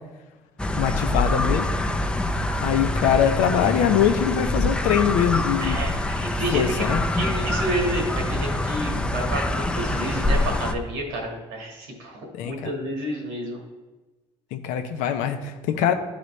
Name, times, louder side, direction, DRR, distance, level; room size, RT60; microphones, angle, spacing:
sound 1, 0.6-10.7, left 1 dB, 5° left, 0.5 m, -25 dB
voice 1, 0.7-1.7 2.6-5.8 6.5-7.0 12.3-12.7 14.5-15.9, left 9 dB, 80° left, 7 dB, 0.7 m, -23 dB
voice 2, 5.6-6.9 7.1-13.6, right 1 dB, 90° right, 1 dB, 1.6 m, -30 dB
11.0 x 3.9 x 3.2 m, 1.2 s
supercardioid pair, 75°, 13 cm